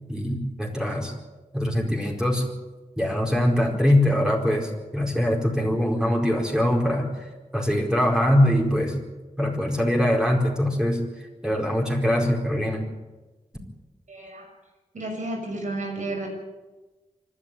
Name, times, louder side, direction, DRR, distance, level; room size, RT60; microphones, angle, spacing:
voice 1, 0.1-1.1 1.5-2.5 3.0-7.3 7.5-9.0 9.4-11.0 11.4-12.9, left 1 dB, 5° right, 0 dB, 4.6 m, -22 dB
voice 2, 14.1-14.5 14.9-16.3, right 2 dB, 75° right, 2 dB, 6.4 m, -32 dB
25.5 x 11.5 x 9.2 m, 1.2 s
wide cardioid pair, 75°, 13 cm